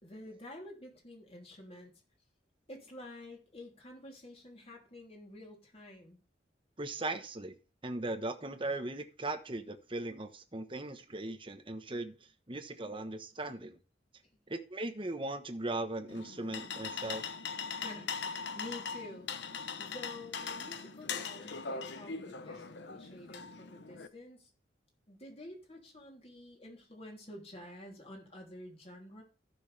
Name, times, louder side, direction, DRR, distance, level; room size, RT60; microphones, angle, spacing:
voice 1, 0.0-1.9 2.7-6.2 17.8-19.3 19.8-24.5 25.1-29.2, left 1 dB, 35° left, 3.1 m, -49 dB
voice 2, 6.8-7.5 7.8-12.1 12.5-13.8 14.5-17.2, right 2 dB, 30° right, 1.1 m, -38 dB
sound 1, 16.1-24.1, left 5 dB, 70° left, 0.9 m, -41 dB
15.0 x 6.3 x 3.4 m
head